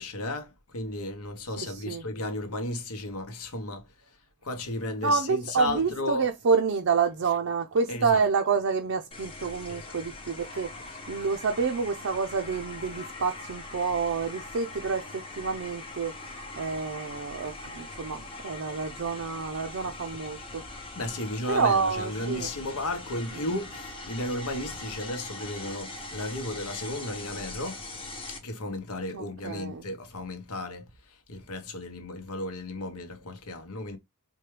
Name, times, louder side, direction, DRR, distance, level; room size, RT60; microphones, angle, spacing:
voice 1, 0.0-3.9 4.4-6.3 7.9-8.2 9.7-10.0 20.9-27.8 28.3-34.0, left 1 dB, 75° left, 0.9 m, -34 dB
voice 2, 1.6-2.0 5.0-20.6 21.5-22.5 23.3-23.5 29.1-29.9, right 5 dB, 60° right, 0.5 m, -28 dB
sound 1, 9.1-28.4, left 2 dB, 25° left, 0.9 m, -42 dB
4.5 x 2.2 x 3.2 m
head